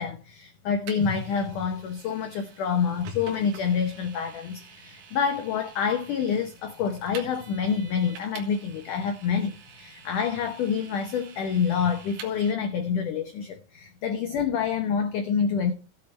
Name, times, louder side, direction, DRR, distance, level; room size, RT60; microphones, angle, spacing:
voice 1, 0.0-15.7, left 6 dB, 90° left, 1.8 m, -27 dB
Vehicle, 0.9-12.5, right 7 dB, 80° right, 3.9 m, -48 dB
16.0 x 8.4 x 3.2 m
omnidirectional pair, 5.1 m